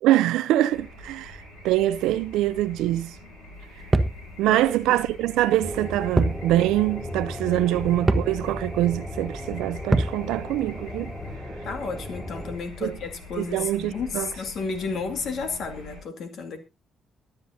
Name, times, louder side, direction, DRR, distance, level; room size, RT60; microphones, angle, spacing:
voice 1, 0.0-3.2 4.4-11.1 12.8-13.0 13.4-14.3, right 14 dB, 80° right, 0.5 m, -24 dB
sound 1, 0.7-16.0, left 3 dB, 90° left, 5.7 m, -42 dB
sound 2, 3.9-4.2 6.2-6.4 6.8-6.9 8.1-8.4 9.9-10.2, right 2 dB, 25° right, 1.1 m, -22 dB
voice 2, 4.5-5.0 7.5-8.1 11.6-16.6, left 4 dB, 65° left, 2.2 m, -33 dB
sound 3, 5.6-12.6, equal, 15° left, 4.2 m, -36 dB
23.0 x 7.9 x 2.7 m
hypercardioid pair, 45°, 0 cm